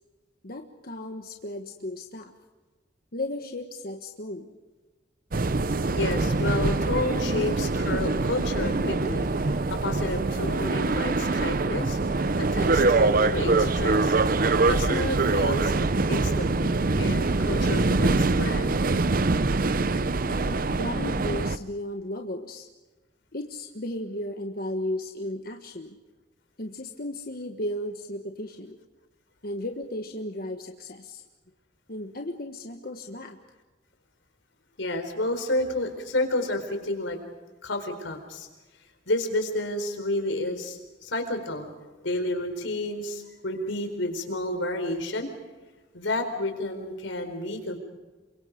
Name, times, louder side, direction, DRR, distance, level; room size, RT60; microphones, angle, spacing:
voice 1, 0.4-2.3 3.1-4.5 7.3-7.5 8.8-8.9 20.3-22.7 23.3-26.0 26.6-28.8 29.4-31.2 31.9-33.4 42.6-42.7, left 1 dB, 50° left, 4 dB, 1.4 m, -35 dB
sound 1, 5.3-21.6, right 3 dB, 50° right, 0.7 m, -24 dB
voice 2, 5.6-14.4 14.6-18.8 34.8-37.2 37.6-38.5 39.1-41.7 42.0-45.3 45.9-47.8, left 1 dB, 90° left, 6 dB, 4.3 m, -31 dB
28.0 x 24.0 x 5.2 m, 1.3 s
head